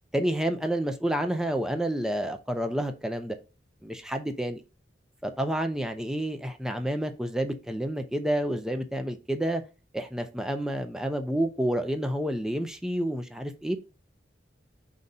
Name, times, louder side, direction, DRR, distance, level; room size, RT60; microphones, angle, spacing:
voice 1, 0.1-3.4 3.8-4.6 5.2-9.6 9.9-13.8, right 1 dB, 5° right, 0.5 m, -29 dB
4.7 x 4.1 x 5.3 m
head